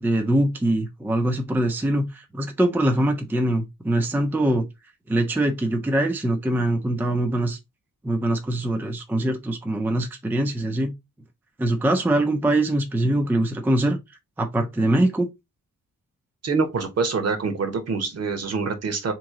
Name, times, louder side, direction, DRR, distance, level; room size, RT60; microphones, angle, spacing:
voice 1, 0.0-4.7 5.1-7.6 8.0-10.9 11.6-14.0 14.4-15.3, right 1 dB, 5° right, 0.4 m, -23 dB
voice 2, 16.4-19.1, right 4 dB, 50° right, 1.0 m, -25 dB
3.6 x 3.0 x 3.7 m
wide cardioid pair, 170°, 32 cm